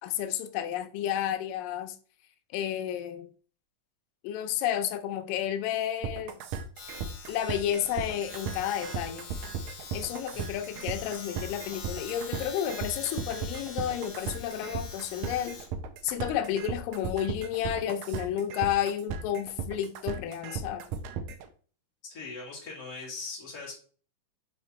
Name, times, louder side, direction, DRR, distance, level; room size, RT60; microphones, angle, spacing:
voice 1, 0.0-2.0 2.5-3.3 4.2-6.4 7.3-9.3 9.9-15.6 16.0-20.9, left 10 dB, 90° left, 2.3 m, -31 dB
sound 1, 6.0-21.5, right 6 dB, 80° right, 1.7 m, -36 dB
Domestic sounds home sounds, 6.8-17.1, left 4 dB, 65° left, 2.5 m, -45 dB
voice 2, 22.0-23.7, left 3 dB, 30° left, 2.5 m, -40 dB
6.1 x 3.8 x 4.2 m
omnidirectional pair, 3.8 m